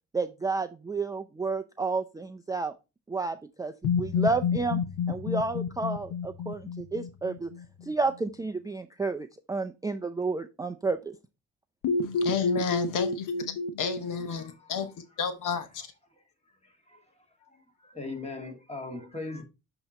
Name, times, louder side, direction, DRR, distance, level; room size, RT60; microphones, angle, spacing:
voice 1, 0.1-2.7 3.1-4.8 5.1-7.5 7.8-11.2, right 3 dB, 10° right, 0.4 m, -31 dB
sound 1, 3.8-7.8 11.8-14.3, left 5 dB, 90° left, 0.8 m, -30 dB
voice 2, 12.0-13.5 13.8-14.9 15.2-15.8, left 6 dB, 65° left, 1.0 m, -31 dB
voice 3, 14.3-14.9 16.6-17.0 17.4-19.4, left 3 dB, 20° left, 1.9 m, -40 dB
7.7 x 3.0 x 4.1 m
cardioid pair, 100°, 33 cm